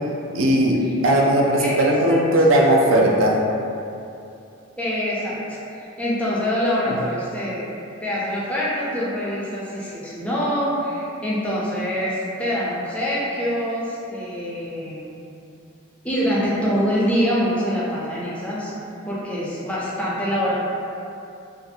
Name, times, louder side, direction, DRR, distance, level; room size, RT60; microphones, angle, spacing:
voice 1, 0.3-3.4 6.9-7.0, right 1 dB, 70° right, -1 dB, 0.3 m, -18 dB
voice 2, 1.6-2.2 4.8-7.7 8.0-15.1 16.0-18.7 19.0-20.6, equal, 5° left, -8 dB, 0.4 m, -25 dB
2.5 x 2.3 x 2.6 m, 2.7 s
head